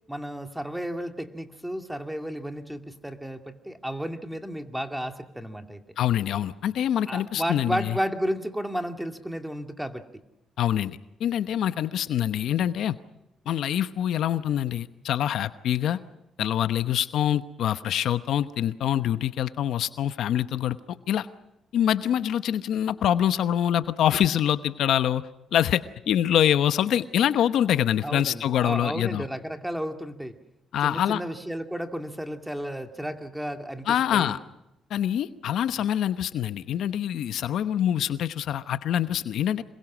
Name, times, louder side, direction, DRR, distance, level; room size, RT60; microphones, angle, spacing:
voice 1, 0.1-5.8 7.1-10.0 28.0-30.4 30.8-34.4, equal, 5° right, 6 dB, 2.3 m, -33 dB
voice 2, 6.0-8.0 10.6-13.0 13.5-16.0 16.4-20.8 21.1-21.3 21.7-25.2 25.5-29.2 30.7-31.2 33.9-34.4 34.9-39.6, left 10 dB, 75° left, 12 dB, 1.0 m, -25 dB
26.5 x 22.5 x 6.2 m, 0.92 s
cardioid pair, 90°, 0 cm